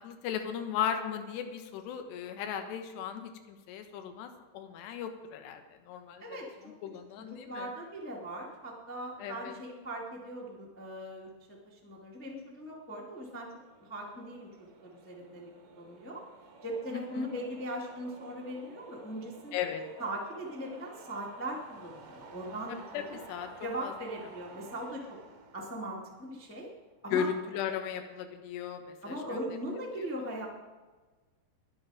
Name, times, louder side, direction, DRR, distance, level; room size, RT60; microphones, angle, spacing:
voice 1, 0.0-6.2 6.8-7.7 9.2-9.5 16.9-17.3 19.5-19.8 22.7-23.5 23.8-23.9 27.1-29.4 30.0-30.1, left 8 dB, 80° left, 7 dB, 3.2 m, -36 dB
voice 2, 6.2-6.7 7.2-13.5 13.8-16.2 16.6-19.5 20.0-23.0 23.6-25.2 25.5-26.7 27.0-27.3 29.0-30.5, right 1 dB, 10° left, -3 dB, 0.5 m, -40 dB
sound 1, 12.7-27.0, right 3 dB, 60° right, 1.7 m, -53 dB
22.0 x 7.6 x 4.9 m, 1.3 s
omnidirectional pair, 5.0 m